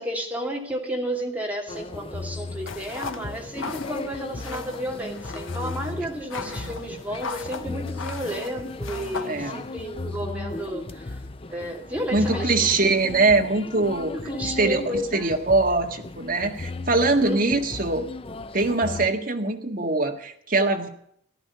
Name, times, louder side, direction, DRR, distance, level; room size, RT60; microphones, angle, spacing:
voice 1, 0.0-11.2 11.5-12.7 14.0-15.3 17.2-17.5, equal, 10° right, 0 dB, 2.4 m, -32 dB
sound 1, 1.7-19.1, left 3 dB, 30° left, 0.5 m, -36 dB
sound 2, 2.7-9.8, left 4 dB, 90° left, 1.1 m, -38 dB
voice 2, 6.4-6.7 9.2-9.6 12.1-14.1 14.4-18.1 18.5-20.9, right 3 dB, 45° right, 4 dB, 1.7 m, -23 dB
14.5 x 12.0 x 5.6 m, 0.69 s
head